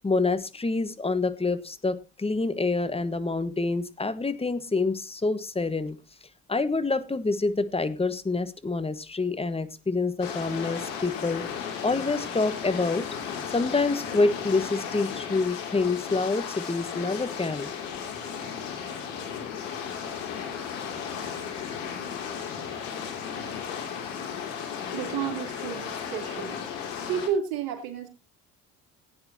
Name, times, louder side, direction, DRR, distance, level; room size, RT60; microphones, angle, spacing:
voice 1, 0.0-6.0 6.5-13.0 13.5-17.7, left 3 dB, 15° left, 1.4 m, -27 dB
sound 1, 10.2-27.3, left 7 dB, 85° left, 2.7 m, -35 dB
voice 2, 24.9-26.6 27.1-28.1, right 8 dB, 70° right, 3.2 m, -31 dB
18.5 x 9.6 x 2.8 m
hypercardioid pair, 70°, 37 cm